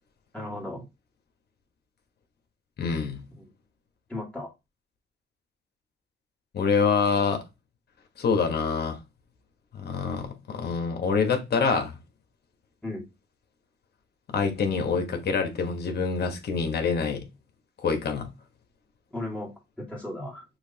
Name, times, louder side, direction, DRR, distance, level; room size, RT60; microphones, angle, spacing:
voice 1, 0.3-0.9 3.4-3.5 4.1-4.5 12.8-13.0 19.1-19.5 19.8-20.4, left 1 dB, 5° left, 2.0 m, -35 dB
voice 2, 2.8-3.2 6.5-7.4 8.2-9.0 9.7-11.9 14.3-17.3 17.8-18.3, left 5 dB, 55° left, 1.2 m, -26 dB
6.3 x 2.9 x 2.8 m
cardioid pair, 90°, 20 cm